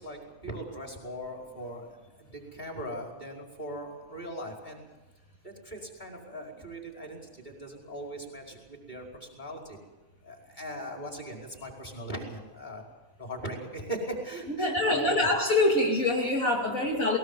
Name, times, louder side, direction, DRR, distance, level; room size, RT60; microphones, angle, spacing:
voice 1, 0.0-1.9 2.2-4.8 5.4-9.8 10.2-12.8 13.2-15.3 16.7-16.8, right 1 dB, 30° left, 0 dB, 5.3 m, -39 dB
voice 2, 14.6-17.2, left 2 dB, 70° left, -2 dB, 3.2 m, -25 dB
20.0 x 20.0 x 7.5 m, 1.2 s
omnidirectional pair, 1.5 m